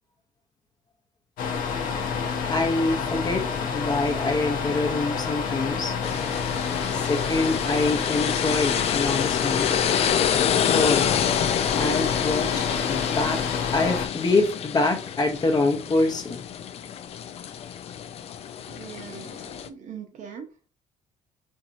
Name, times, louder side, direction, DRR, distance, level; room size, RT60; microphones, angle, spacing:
sound 1, 1.4-14.1, left 6 dB, 70° left, 0.8 m, -28 dB
voice 1, 2.5-5.9 6.9-9.8 10.6-11.1 11.8-13.4 13.7-16.4, left 3 dB, 25° left, 4 dB, 0.8 m, -25 dB
sound 2, 6.0-19.7, left 9 dB, 45° left, 0.4 m, -28 dB
voice 2, 10.6-11.0 11.8-12.0 18.7-20.5, right 7 dB, 55° right, 5 dB, 0.9 m, -40 dB
4.5 x 2.8 x 2.5 m, 0.35 s
cardioid pair, 120°, 15 cm